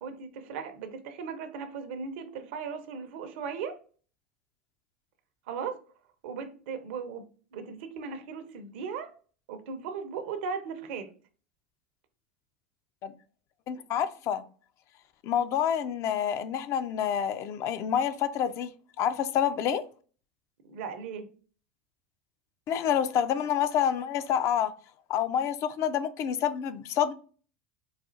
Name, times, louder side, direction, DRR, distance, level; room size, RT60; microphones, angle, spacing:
voice 1, 0.0-3.8 5.5-5.8 6.2-9.1 9.5-11.1 20.6-21.3, right 6 dB, 65° right, 0.6 m, -37 dB
voice 2, 13.7-14.4 15.2-18.7 19.0-19.8 22.7-24.7 25.1-27.1, left 9 dB, 45° left, 0.4 m, -28 dB
4.1 x 2.3 x 2.5 m
hypercardioid pair, 80°, 7 cm